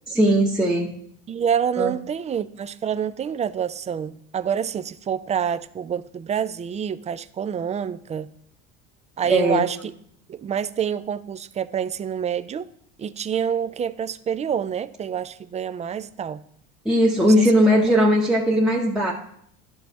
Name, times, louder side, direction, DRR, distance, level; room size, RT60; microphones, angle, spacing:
voice 1, 0.1-0.9 1.8-1.9 9.3-9.7 16.8-19.1, equal, ahead, 0.9 m, -18 dB
voice 2, 1.3-8.3 9.2-9.8 10.3-12.7 13.0-16.4 17.2-17.5, right 8 dB, 20° right, 0.3 m, -27 dB
11.5 x 4.3 x 4.6 m
supercardioid pair, 85°, 35 cm